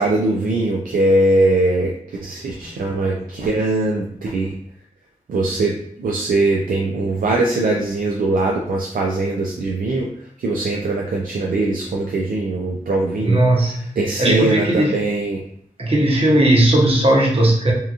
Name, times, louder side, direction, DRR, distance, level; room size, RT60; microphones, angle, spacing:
voice 1, 0.0-1.9 2.2-4.5 5.3-10.1 10.4-13.4 14.0-15.4, right 2 dB, 75° right, -1 dB, 0.4 m, -21 dB
voice 2, 13.2-13.8 14.2-15.0 15.8-17.7, right 1 dB, 40° right, -2 dB, 0.9 m, -16 dB
2.8 x 2.4 x 2.4 m, 0.65 s
cardioid pair, 40°, 14 cm